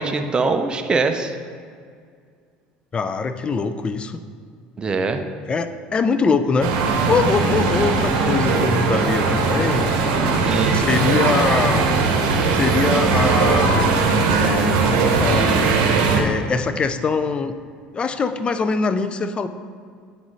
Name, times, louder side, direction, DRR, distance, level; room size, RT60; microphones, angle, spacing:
voice 1, 0.0-1.3 4.8-5.2 10.4-10.8, right 4 dB, 25° right, 6 dB, 0.5 m, -22 dB
voice 2, 2.9-4.2 5.5-9.9 10.7-11.9 12.5-13.9 14.3-15.5 16.1-17.5 17.9-19.5, left 5 dB, 30° left, 11 dB, 0.4 m, -23 dB
sound 1, 6.6-16.2, right 4 dB, 80° right, 0.9 m, -19 dB
9.6 x 3.9 x 3.2 m, 2.1 s
supercardioid pair, 95°, 4 cm